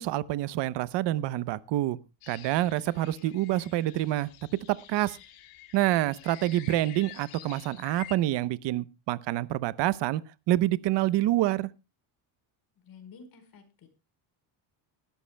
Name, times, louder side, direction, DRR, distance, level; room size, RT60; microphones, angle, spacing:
voice 1, 0.0-2.0 2.3-4.3 4.7-5.2 5.7-10.2 10.5-11.7, right 15 dB, 60° right, 0.8 m, -27 dB
sound 1, 2.2-8.2, left 12 dB, 85° left, 2.5 m, -49 dB
voice 2, 12.7-13.9, left 5 dB, 45° left, 4.6 m, -51 dB
20.0 x 13.0 x 2.2 m
cardioid pair, 120°, 48 cm